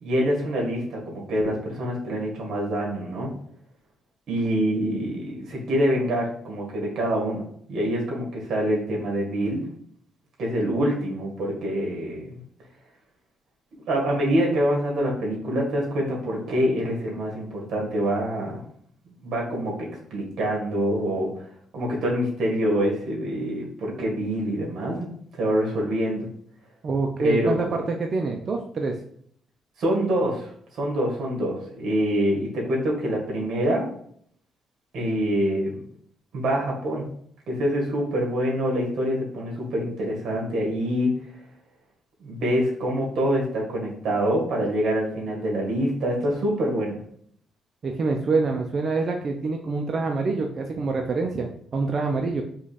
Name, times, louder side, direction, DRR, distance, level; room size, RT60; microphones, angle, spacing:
voice 1, 0.0-3.3 4.3-7.4 7.7-9.6 10.4-12.4 13.9-18.6 19.2-19.7 20.1-21.4 21.7-25.1 25.3-26.3 27.2-27.8 29.8-33.9 34.9-35.8 36.3-37.0 37.5-41.1 42.2-47.0, equal, 65° right, -2 dB, 1.7 m, -25 dB
voice 2, 26.8-29.0 47.8-52.4, right 3 dB, 45° right, 2 dB, 0.5 m, -26 dB
3.9 x 3.1 x 4.1 m, 0.63 s
cardioid pair, 90°, 0 cm